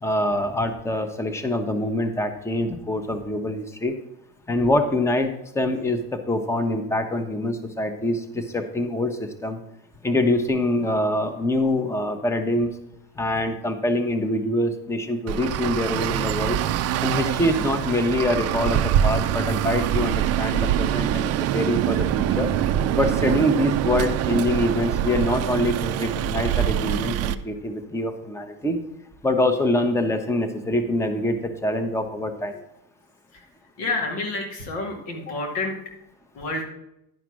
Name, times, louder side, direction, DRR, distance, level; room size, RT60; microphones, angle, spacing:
voice 1, 0.0-3.9 4.5-9.6 10.0-12.7 13.2-16.6 17.0-22.5 23.0-28.8 29.2-32.6, left 1 dB, 5° left, 8 dB, 0.8 m, -25 dB
Traffic noise roadway noise, 15.3-27.4, right 10 dB, 35° right, 0.4 m, -24 dB
voice 2, 33.8-35.7 36.3-36.6, left 2 dB, 90° left, 2 dB, 2.3 m, -28 dB
10.5 x 4.9 x 6.1 m, 0.82 s
supercardioid pair, 120°, 46 cm